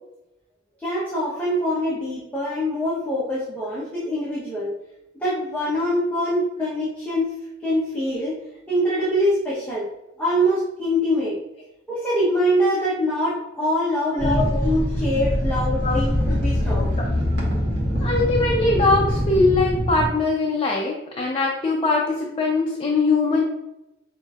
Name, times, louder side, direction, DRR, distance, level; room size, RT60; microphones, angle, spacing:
voice 1, 0.8-4.8 5.2-7.3 7.6-8.4 8.7-9.9 10.2-11.4 11.9-16.9, equal, 10° left, -9 dB, 0.9 m, -24 dB
voice 2, 14.1-14.7 15.8-16.4 16.8-16.9 18.0-23.4, left 3 dB, 30° left, -2 dB, 0.5 m, -22 dB
sound 1, 14.2-20.1, equal, 65° right, 1.3 m, -23 dB
6.1 x 2.6 x 2.4 m, 0.92 s
head